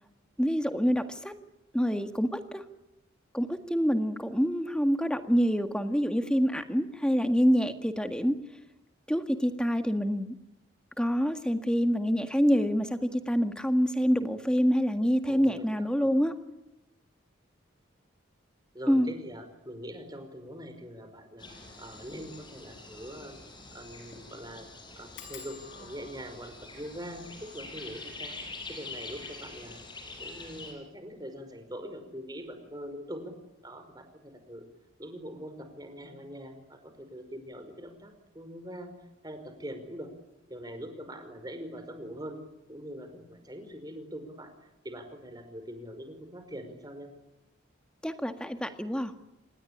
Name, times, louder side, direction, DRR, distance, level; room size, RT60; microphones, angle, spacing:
voice 1, 0.4-1.3 1.7-2.6 3.3-8.3 9.1-10.3 11.0-16.3 18.9-19.1 48.0-49.1, equal, 5° left, 8 dB, 1.8 m, -26 dB
voice 2, 15.2-16.1 18.7-21.5 21.8-23.4 23.7-24.7 24.9-28.3 28.7-29.8 30.2-33.3 33.6-34.6 35.0-38.9 39.2-40.1 40.5-42.4 42.7-44.5 44.8-47.1, equal, 20° right, 8 dB, 5.1 m, -43 dB
sound 1, 21.4-30.7, left 3 dB, 25° left, 5.9 m, -45 dB
sound 2, 22.1-22.2 22.6-22.7 22.9-23.0 23.6-23.8 24.1-24.2 25.2-30.4 31.1-31.6 31.9-32.3 32.5-32.6, left 6 dB, 80° left, 6.6 m, -54 dB
26.5 x 20.5 x 10.0 m, 0.95 s
head